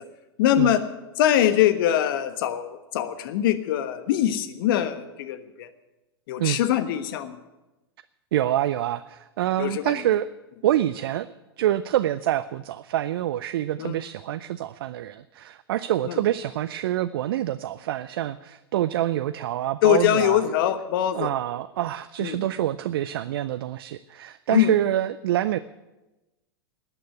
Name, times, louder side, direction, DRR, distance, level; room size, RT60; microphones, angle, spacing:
voice 1, 0.4-0.8 1.2-5.7 6.3-7.3 9.6-10.0 13.8-14.0 16.1-16.2 19.8-21.3 22.2-22.4 24.5-24.7, left 11 dB, 60° left, 11 dB, 1.3 m, -23 dB
voice 2, 8.3-10.3 10.6-11.3 11.6-20.5 21.1-25.6, right 12 dB, 65° right, 13 dB, 0.5 m, -26 dB
13.0 x 9.1 x 9.3 m, 1.0 s
hypercardioid pair, 100°, 13 cm